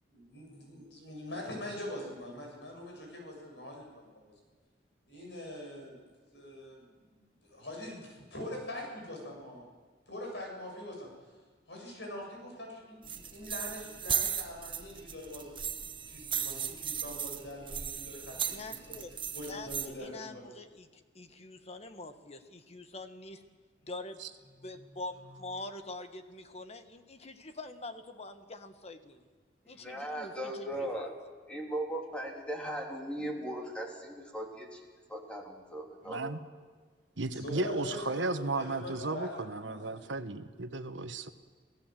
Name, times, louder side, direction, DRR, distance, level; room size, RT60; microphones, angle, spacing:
voice 1, 0.1-4.3 5.1-5.9 6.3-6.8 7.1-9.6 10.1-11.1 11.7-15.5 16.1-19.0 19.3-20.5 37.3-39.3 39.6-40.2, left 1 dB, 70° left, 0 dB, 7.8 m, -43 dB
sound 1, 13.0-19.9, right 8 dB, 30° right, 1.2 m, -36 dB
voice 2, 18.5-19.1 19.5-23.4 23.8-24.3 24.6-29.2 29.7-31.1, left 2 dB, 35° left, 8 dB, 1.4 m, -45 dB
voice 3, 29.7-31.1 31.5-34.8 35.1-36.4, right 1 dB, 5° left, 0 dB, 3.4 m, -38 dB
voice 4, 36.1-36.4 37.2-41.3, right 3 dB, 90° right, 9 dB, 1.3 m, -34 dB
28.0 x 16.5 x 7.7 m, 1.5 s
head